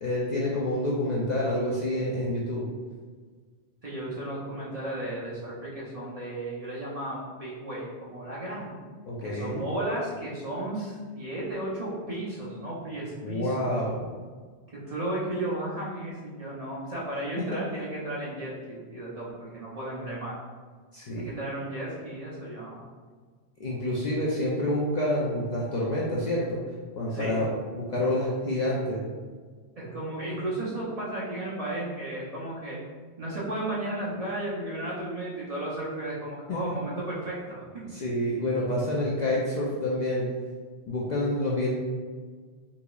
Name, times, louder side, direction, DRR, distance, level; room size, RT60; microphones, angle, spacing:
voice 1, 0.0-2.6 9.1-9.7 13.2-14.0 17.4-17.5 20.9-21.3 23.6-26.6 27.0-27.5 27.7-29.0 36.5-36.6 37.9-40.3 40.9-41.7, left 1 dB, 55° left, -5 dB, 0.5 m, -28 dB
voice 2, 3.8-8.8 9.2-13.6 14.7-20.4 21.1-22.8 27.1-27.5 29.8-32.8 33.2-38.0, right 1 dB, 40° right, -7 dB, 0.6 m, -34 dB
3.9 x 2.9 x 2.3 m, 1.5 s
omnidirectional pair, 1.1 m